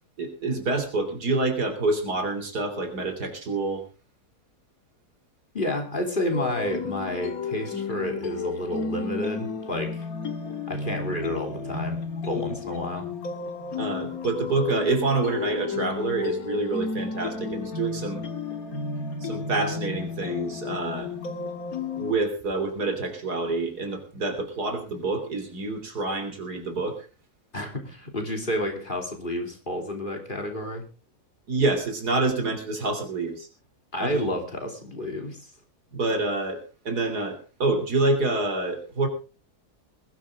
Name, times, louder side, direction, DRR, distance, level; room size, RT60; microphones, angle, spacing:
voice 1, 0.2-3.8 13.8-18.2 19.2-21.1 22.0-27.0 31.5-33.5 34.0-34.3 35.9-39.1, right 3 dB, 75° right, 7 dB, 3.7 m, -27 dB
voice 2, 5.5-10.1 10.7-12.0 12.3-13.1 27.5-30.9 33.9-35.5, left 1 dB, 30° left, 3 dB, 3.3 m, -30 dB
sound 1, 6.3-22.2, left 4 dB, 60° left, 2.3 m, -32 dB
21.0 x 12.0 x 3.7 m, 0.34 s
omnidirectional pair, 1.7 m